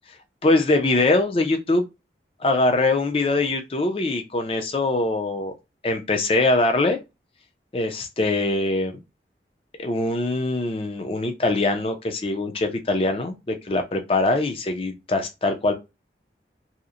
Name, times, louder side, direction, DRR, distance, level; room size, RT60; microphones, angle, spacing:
voice 1, 0.4-1.8 2.4-5.5 5.8-7.0 7.7-8.9 9.8-15.7, left 2 dB, 30° left, 0.4 m, -22 dB
2.8 x 2.0 x 2.4 m
head